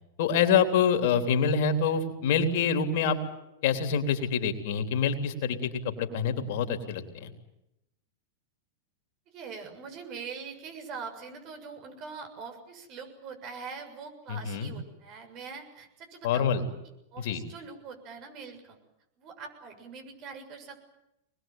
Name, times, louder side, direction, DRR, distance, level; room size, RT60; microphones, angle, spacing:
voice 1, 0.2-3.2 3.6-7.3 14.3-14.7 16.2-16.6 17.2-17.4, left 6 dB, 60° left, 6 dB, 3.5 m, -26 dB
voice 2, 9.3-16.6 17.1-18.8 19.2-20.8, right 5 dB, 45° right, 6 dB, 6.9 m, -43 dB
24.0 x 21.0 x 9.2 m, 0.87 s
hypercardioid pair, 110°, 0 cm